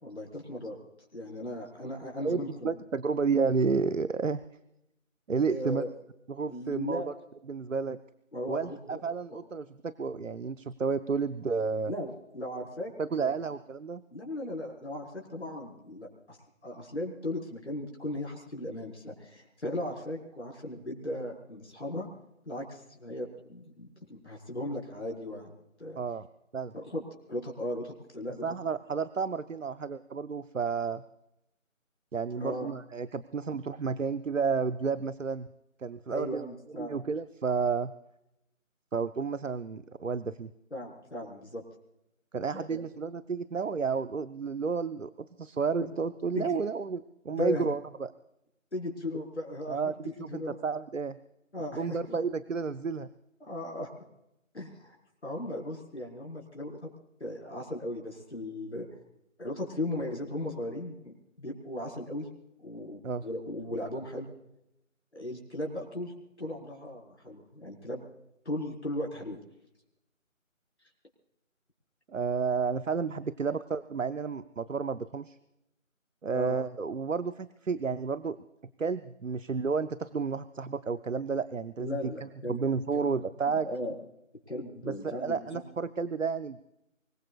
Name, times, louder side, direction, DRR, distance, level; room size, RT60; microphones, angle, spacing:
voice 1, 0.0-0.8 1.1-2.7 5.5-5.9 6.5-7.1 8.3-9.0 11.9-12.9 13.2-13.5 14.1-16.4 16.6-22.1 22.4-26.0 26.7-27.0 27.3-28.5 32.3-32.7 36.1-37.0 40.7-41.6 42.5-42.8 46.3-46.5 47.4-47.6 48.7-50.6 51.5-52.2 53.4-53.9 54.5-54.9 55.2-56.9 57.2-58.9 59.4-62.3 62.6-64.3 65.1-66.1 66.4-68.0 68.4-69.4 76.3-76.6 81.8-82.6 82.9-83.1 83.5-83.9 84.5-85.4, left 1 dB, 55° left, 0 dB, 5.1 m, -37 dB
voice 2, 2.2-4.4 5.3-5.8 6.3-7.1 7.5-8.0 8.5-11.9 13.0-14.0 26.0-26.3 26.5-26.7 28.4-31.0 32.1-35.5 35.8-36.5 36.8-37.9 38.9-40.5 42.3-48.1 49.7-51.2 51.8-53.1 63.0-63.2 72.1-75.4 76.2-78.4 78.8-83.7 84.8-86.7, right 5 dB, 70° right, 14 dB, 0.7 m, -31 dB
24.5 x 21.0 x 2.4 m, 0.84 s
figure-of-eight pair, 180°, 40 cm